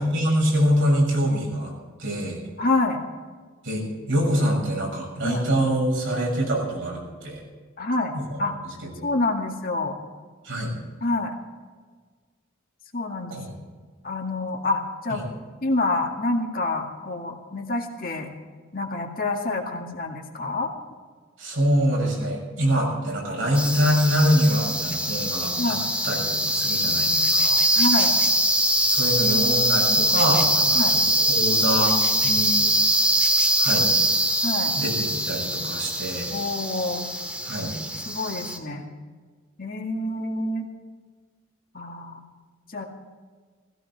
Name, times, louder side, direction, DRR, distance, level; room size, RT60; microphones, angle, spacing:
voice 1, 0.0-2.4 3.6-7.4 8.1-8.4 9.0-9.1 10.4-10.7 13.3-13.5 15.1-15.2 21.4-25.8 26.0-27.6 28.9-31.0 31.3-32.6 33.6-33.9 34.7-36.3 37.4-37.8, equal, 65° right, -1 dB, 6.8 m, -24 dB
voice 2, 2.6-3.0 5.2-5.5 7.8-8.6 9.0-10.0 11.0-11.4 12.9-13.4 14.0-15.2 15.6-18.3 18.7-20.7 25.6-25.9 27.7-28.1 30.7-31.0 34.4-34.8 36.3-37.1 38.1-38.9 39.6-40.7 41.7-42.2 42.7-42.8, left 2 dB, 45° left, 2 dB, 2.0 m, -27 dB
sound 1, 23.5-38.6, right 1 dB, 5° right, 1.7 m, -22 dB
18.0 x 16.0 x 4.8 m, 1.5 s
head